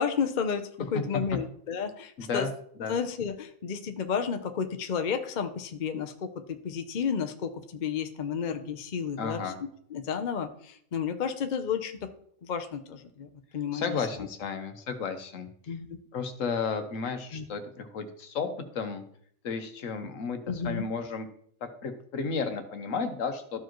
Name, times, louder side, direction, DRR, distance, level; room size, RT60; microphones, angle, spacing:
voice 1, 0.0-2.5 2.9-9.4 9.9-12.1 12.4-14.0 15.7-16.0 17.3-17.4 20.5-20.9, left 6 dB, 45° left, 7 dB, 0.6 m, -32 dB
voice 2, 2.2-2.5 2.8-2.9 9.2-9.6 13.7-15.8 16.1-19.0 19.4-21.3 21.6-23.6, left 5 dB, 70° left, 7 dB, 1.3 m, -33 dB
13.5 x 4.7 x 3.0 m, 0.63 s
omnidirectional pair, 1.4 m